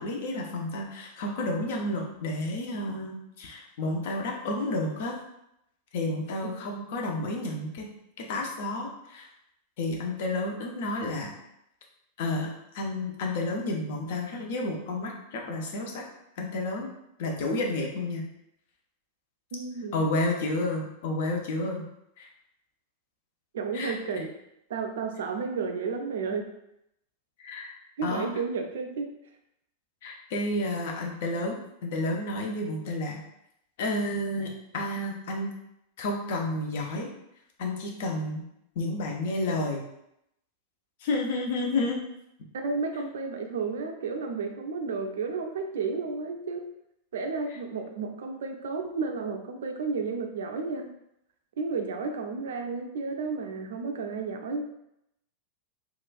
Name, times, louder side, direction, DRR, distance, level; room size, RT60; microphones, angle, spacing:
voice 1, 0.0-5.2 5.9-7.9 8.2-9.3 9.8-11.3 12.2-16.0 16.4-16.9 17.2-18.2 19.9-21.8 22.2-22.3 23.7-23.9 27.4-27.7 28.0-28.3 30.0-33.2 33.8-35.5 36.0-37.1 37.6-38.4 38.8-39.8 41.0-42.0, left 2 dB, 55° left, 1 dB, 0.5 m, -31 dB
voice 2, 19.5-20.0 23.5-24.3 24.7-26.5 28.0-29.1 42.5-46.6 47.1-50.9 51.6-54.7, right 4 dB, 60° right, 4 dB, 0.4 m, -32 dB
3.0 x 2.4 x 2.4 m, 0.80 s
figure-of-eight pair, 90°, 0 cm